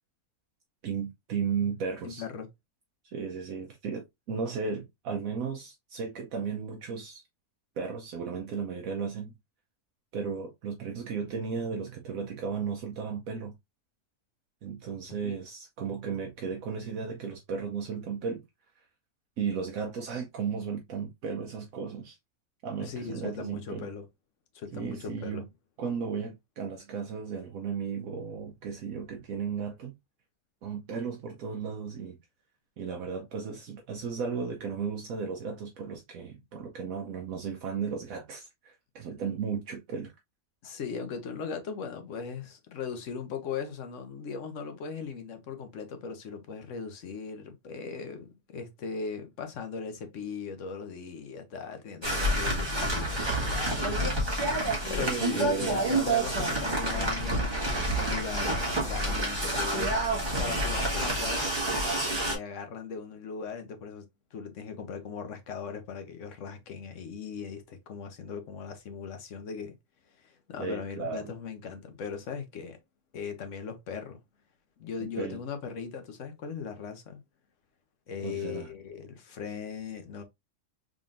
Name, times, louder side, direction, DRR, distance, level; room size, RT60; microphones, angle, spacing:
voice 1, 0.8-2.2 3.1-7.2 7.8-9.3 10.1-13.5 14.6-18.4 19.4-22.2 22.6-23.9 24.7-25.4 25.8-29.9 30.6-32.2 32.8-40.1 55.0-55.9 60.2-60.6 70.6-71.3 75.2-75.4 78.2-78.7, right 6 dB, 70° right, 1.1 m, -35 dB
voice 2, 2.0-2.5 15.2-15.4 22.8-24.1 24.5-25.4 39.1-39.3 40.6-54.1 54.8-57.7 57.9-60.1 60.4-61.6 62.2-69.8 70.2-72.8 73.1-74.2 74.8-77.2 78.1-80.2, left 6 dB, 60° left, 1.1 m, -38 dB
sound 1, 52.0-62.3, right 1 dB, 20° right, 1.5 m, -28 dB
3.7 x 3.6 x 2.4 m
omnidirectional pair, 1.6 m